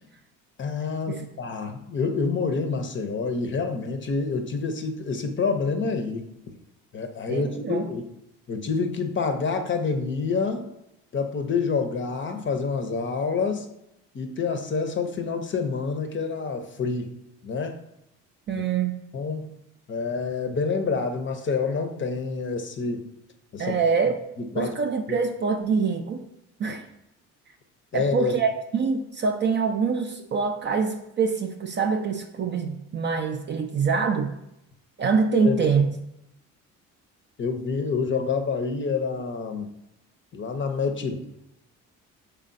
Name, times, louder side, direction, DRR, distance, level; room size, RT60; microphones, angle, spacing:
voice 1, 0.6-6.3 6.9-8.1 8.5-10.7 11.1-13.7 14.1-17.1 17.4-17.8 18.5-18.6 19.1-19.5 19.9-23.1 23.5-23.8 24.4-24.8 25.1-25.2 26.7-26.8 27.9-28.4 35.3-35.7 37.4-39.7 40.3-41.3, left 4 dB, 35° left, 6 dB, 0.6 m, -27 dB
voice 2, 7.3-7.9 18.5-18.9 23.6-24.2 24.5-26.3 26.6-26.8 27.9-34.3 35.0-35.9, right 5 dB, 30° right, 5 dB, 0.4 m, -25 dB
4.5 x 3.3 x 2.5 m, 0.84 s
hypercardioid pair, 60°, 36 cm